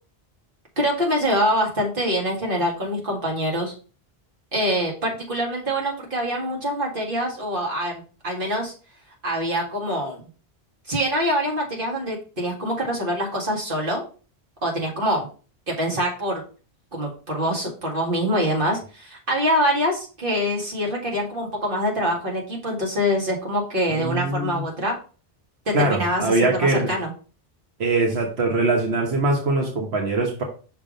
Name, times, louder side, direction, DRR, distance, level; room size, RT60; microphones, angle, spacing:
voice 1, 0.8-3.7 4.5-8.7 9.2-10.2 10.9-14.0 14.6-15.3 15.7-16.4 16.9-25.0 25.7-27.1, equal, 60° right, -1 dB, 2.1 m, -25 dB
voice 2, 23.9-24.6 25.7-26.9 27.8-30.4, right 2 dB, 90° right, 1 dB, 1.4 m, -22 dB
6.0 x 3.5 x 5.1 m, 0.37 s
omnidirectional pair, 1.0 m